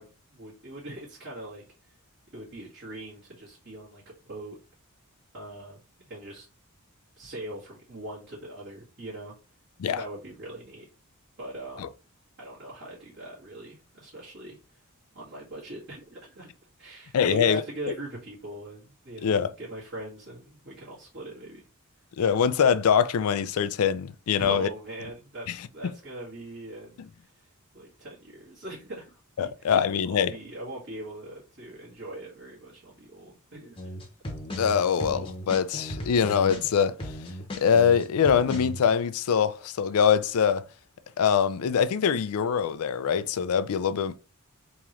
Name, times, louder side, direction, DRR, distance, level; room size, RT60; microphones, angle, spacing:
voice 1, 0.0-2.0 2.3-4.6 5.3-5.8 6.1-6.5 7.2-9.3 10.0-10.8 11.4-11.8 12.4-14.8 15.1-16.5 16.8-21.6 24.4-27.3 27.7-29.8 30.1-34.0, right 1 dB, 50° right, 1.7 m, -41 dB
voice 2, 17.1-17.6 19.2-19.5 22.2-24.7 25.5-25.6 29.4-30.3 34.6-37.2 37.6-40.6 41.2-44.2, left 7 dB, 75° left, 0.4 m, -23 dB
sound 1, 33.8-38.8, equal, 25° left, 0.8 m, -36 dB
3.7 x 2.9 x 3.1 m
head